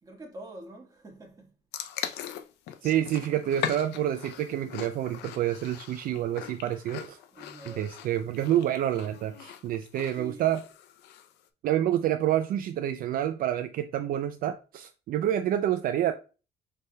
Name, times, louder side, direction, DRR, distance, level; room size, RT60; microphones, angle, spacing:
voice 1, 0.0-1.6 2.1-2.4 7.3-7.9 10.1-10.6, right 1 dB, 20° right, 1.5 m, -46 dB
sound 1, 1.7-11.3, left 10 dB, 80° left, 0.5 m, -40 dB
voice 2, 2.8-7.2 7.7-10.6 11.6-16.1, right 11 dB, 60° right, 0.4 m, -28 dB
5.5 x 3.3 x 2.2 m
cardioid pair, 110°, 17 cm